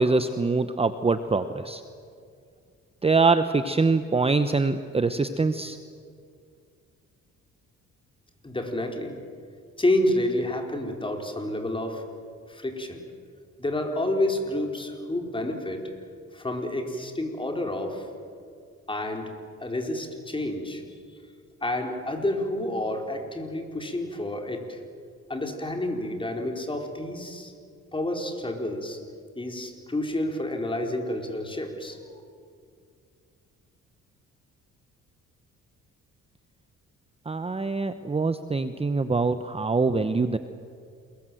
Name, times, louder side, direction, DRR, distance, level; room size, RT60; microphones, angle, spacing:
voice 1, 0.0-1.8 3.0-5.8 37.3-40.4, right 3 dB, 20° right, 10 dB, 1.0 m, -24 dB
voice 2, 8.4-9.2 9.8-12.0 12.5-13.0 13.6-15.8 16.3-18.1 18.9-19.3 19.6-20.8 21.6-24.8 25.3-27.5 27.9-29.0 29.4-32.2, left 1 dB, 15° left, 3 dB, 4.6 m, -29 dB
28.5 x 22.0 x 7.8 m, 2.2 s
cardioid pair, 90°, 30 cm